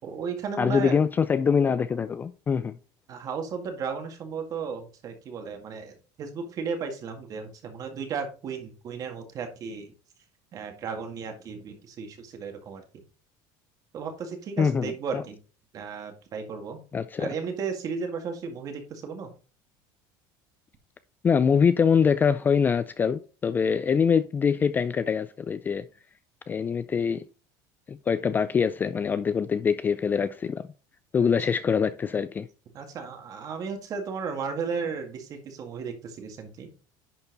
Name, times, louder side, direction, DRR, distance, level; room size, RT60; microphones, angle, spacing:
voice 1, 0.0-1.0 3.1-9.9 10.5-12.8 13.9-15.4 15.7-16.8 17.2-19.3 31.2-31.3 32.7-36.7, right 5 dB, 35° right, 1.9 m, -34 dB
voice 2, 0.6-2.8 14.6-15.2 16.9-17.3 21.2-25.8 26.5-27.2 27.9-30.6 31.1-32.5, left 6 dB, 20° left, 0.3 m, -24 dB
10.5 x 4.5 x 4.0 m
cardioid pair, 150°, 10 cm